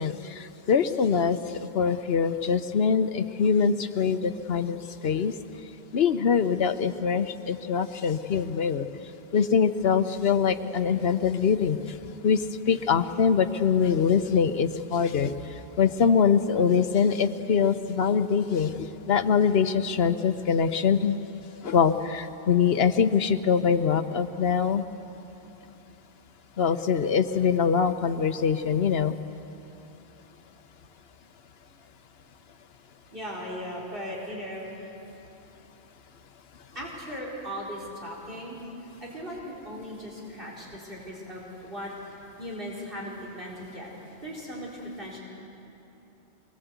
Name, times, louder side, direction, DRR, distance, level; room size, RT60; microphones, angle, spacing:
voice 1, 0.0-1.4 1.7-5.3 5.9-8.9 9.3-11.8 12.2-12.4 12.7-15.5 15.8-21.2 21.6-24.8 26.6-29.1, left 6 dB, 65° left, 10 dB, 1.1 m, -23 dB
voice 2, 33.1-34.9 36.7-38.6 39.0-41.9 42.4-43.9 44.2-45.2, equal, 55° right, -4 dB, 4.5 m, -38 dB
24.5 x 21.0 x 8.2 m, 3.0 s
omnidirectional pair, 1.1 m